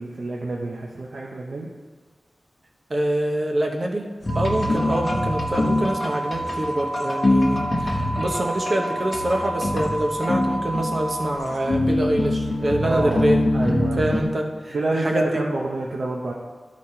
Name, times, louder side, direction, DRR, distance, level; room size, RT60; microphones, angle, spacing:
voice 1, 0.0-1.7 4.6-4.8 12.8-14.2 14.7-16.3, right 2 dB, 75° right, -2 dB, 0.7 m, -28 dB
voice 2, 2.9-4.1 4.3-13.4 14.0-15.4, right 1 dB, 45° right, 2 dB, 0.9 m, -25 dB
sound 1, 4.2-14.2, left 1 dB, 45° left, 1.0 m, -25 dB
sound 2, 4.3-11.4, right 1 dB, 15° left, 1.5 m, -31 dB
12.0 x 4.2 x 4.3 m, 1.4 s
wide cardioid pair, 95°, 0 cm